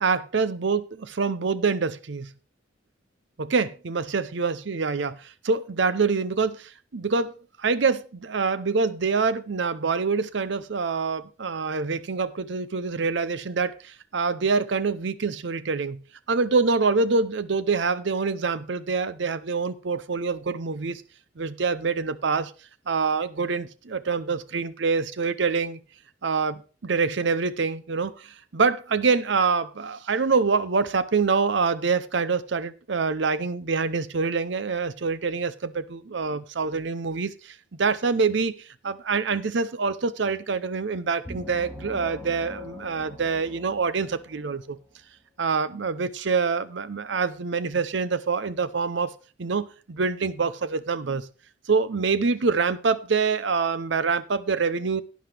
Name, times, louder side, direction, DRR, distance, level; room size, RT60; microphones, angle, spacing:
voice 1, 0.0-2.3 3.4-16.0 16.3-21.0 21.4-22.5 22.9-25.8 26.2-44.8 45.4-49.1 49.4-51.3 51.7-55.0, right 4 dB, 65° right, 0.6 m, -25 dB
sound 1, 41.3-44.8, left 2 dB, ahead, 4.3 m, -42 dB
11.5 x 9.5 x 3.4 m
head